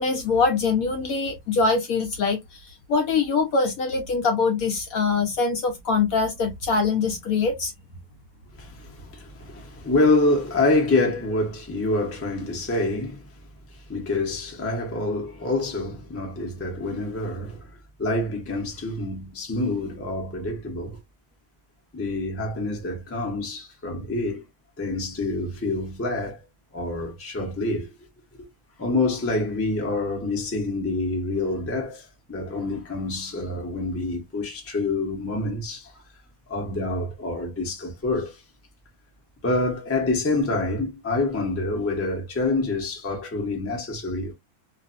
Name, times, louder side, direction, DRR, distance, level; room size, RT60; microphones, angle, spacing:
voice 1, 0.0-2.4 2.9-7.7, left 4 dB, 70° left, 0.9 m, -23 dB
voice 2, 8.5-13.3 13.9-17.7 18.0-21.0 21.9-24.4 24.8-26.4 26.7-27.9 28.8-35.9 36.5-38.4 39.4-44.3, left 2 dB, 15° left, 0.5 m, -26 dB
2.6 x 2.4 x 2.5 m
omnidirectional pair, 1.9 m